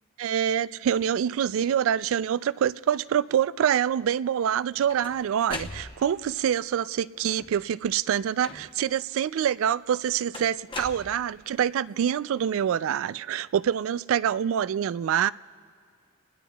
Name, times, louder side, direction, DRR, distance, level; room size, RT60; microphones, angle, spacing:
voice 1, 0.2-15.3, right 9 dB, 70° right, 18 dB, 0.3 m, -26 dB
sound 1, 4.5-6.3 7.2-7.7 8.4-9.0 10.3-11.6, left 3 dB, 25° left, 0.9 m, -40 dB
30.0 x 20.0 x 2.3 m, 2.1 s
head